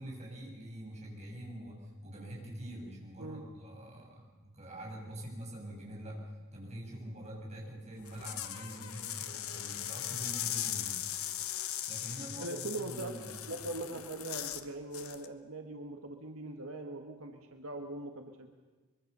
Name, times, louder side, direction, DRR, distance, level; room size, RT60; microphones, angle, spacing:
voice 1, 0.0-6.2 6.5-11.0 11.9-13.4, right 1 dB, 30° right, -2 dB, 7.2 m, -45 dB
sound 1, 8.0-14.7 14.9-15.3, left 11 dB, 80° left, 1.3 m, -39 dB
voice 2, 12.4-13.1 13.5-18.5, right 2 dB, 80° right, 4 dB, 1.7 m, -41 dB
24.0 x 22.5 x 6.9 m, 1.3 s
head